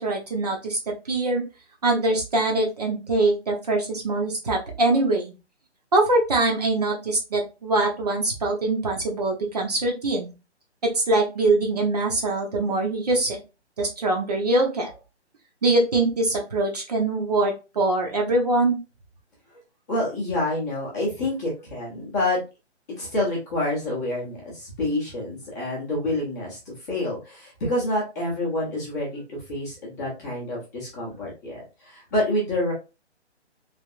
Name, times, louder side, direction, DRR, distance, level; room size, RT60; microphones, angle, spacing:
voice 1, 0.0-1.4 1.8-5.3 5.9-10.3 10.8-13.4 13.8-14.9 15.6-18.8, right 2 dB, 35° right, 1 dB, 0.7 m, -23 dB
voice 2, 19.9-22.4 22.9-32.7, left 1 dB, 15° left, -4 dB, 0.7 m, -28 dB
3.3 x 2.8 x 2.4 m, 0.28 s
hypercardioid pair, 155°, 35 cm